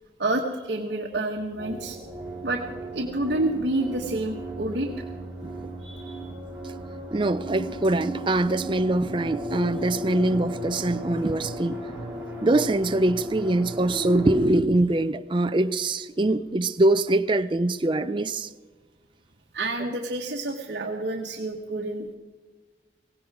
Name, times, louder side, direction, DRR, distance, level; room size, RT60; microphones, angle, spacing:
voice 1, 0.2-2.0 2.4-2.6 2.9-5.0 5.8-6.3 19.5-22.2, right 2 dB, 65° right, 1.3 m, -29 dB
sound 1, 1.6-14.4, right 1 dB, 10° right, 3.1 m, -36 dB
voice 2, 7.1-11.8 12.4-18.5, right 2 dB, 30° right, 0.5 m, -23 dB
17.5 x 17.0 x 4.8 m
head